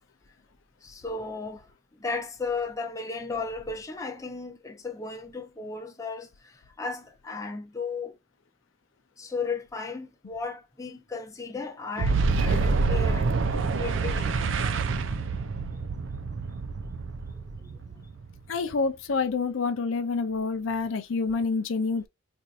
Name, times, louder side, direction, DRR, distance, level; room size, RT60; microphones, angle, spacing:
voice 1, 0.8-8.2 9.2-14.4 17.6-17.8, left 4 dB, 15° left, 0.6 m, -35 dB
Boom, 12.0-18.5, right 4 dB, 65° right, 0.5 m, -27 dB
voice 2, 18.5-22.1, left 4 dB, 70° left, 0.5 m, -27 dB
4.3 x 2.6 x 2.4 m
head